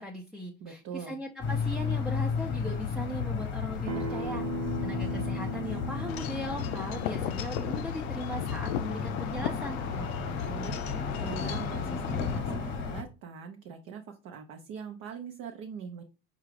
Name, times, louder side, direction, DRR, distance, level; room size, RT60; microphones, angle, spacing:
voice 1, 0.0-4.4 4.8-9.8, left 1 dB, ahead, 0 dB, 0.5 m, -38 dB
voice 2, 0.6-1.2 10.0-16.0, right 6 dB, 50° right, 4 dB, 0.6 m, -42 dB
sound 1, 1.4-13.0, left 5 dB, 40° left, 0.9 m, -33 dB
Acoustic guitar, 3.9-9.1, right 2 dB, 80° right, 0.9 m, -39 dB
Wind chime / Wind, 6.1-12.4, left 10 dB, 85° left, 0.5 m, -38 dB
4.7 x 2.4 x 3.1 m, 0.33 s
supercardioid pair, 95°, 31 cm